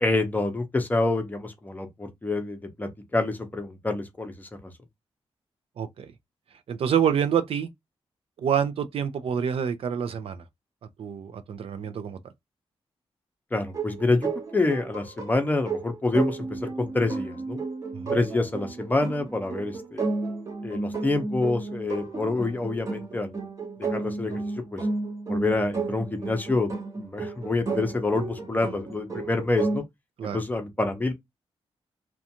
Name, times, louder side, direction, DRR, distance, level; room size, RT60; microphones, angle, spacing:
voice 1, 0.0-4.5 13.5-17.6 18.1-20.0 20.6-23.3 23.8-24.4 24.7-24.8 25.3-26.7 27.0-29.8 30.2-31.1, left 2 dB, 15° left, 0.6 m, -27 dB
voice 2, 5.8-6.1 6.7-7.7 8.4-10.4 11.0-12.2 17.9-18.2 30.2-30.4, right 8 dB, 65° right, 0.4 m, -27 dB
sound 1, 13.7-29.8, right 3 dB, 35° right, 0.7 m, -32 dB
2.5 x 2.2 x 2.7 m
wide cardioid pair, 120°, 10 cm